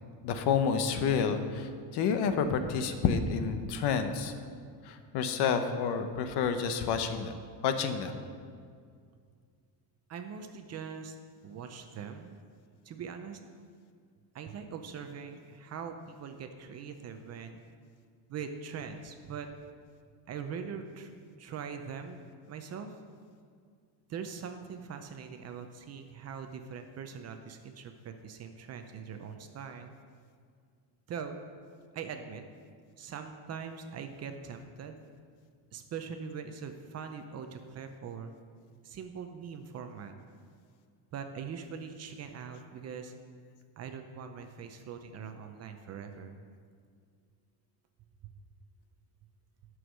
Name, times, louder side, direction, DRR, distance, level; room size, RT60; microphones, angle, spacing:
voice 1, 0.2-4.3 4.8-7.3 7.6-8.1, left 6 dB, 60° left, 8 dB, 0.9 m, -29 dB
voice 2, 10.1-11.2 11.4-12.4 12.8-13.4 14.3-17.6 18.3-19.5 20.3-21.1 21.4-23.0 24.1-29.9 31.1-31.4 31.9-32.5 33.0-35.0 35.7-38.3 38.8-40.1 41.1-43.1 43.8-46.4, right 6 dB, 35° right, 6 dB, 0.6 m, -42 dB
11.0 x 6.3 x 6.3 m, 2.1 s
cardioid pair, 170°, 46 cm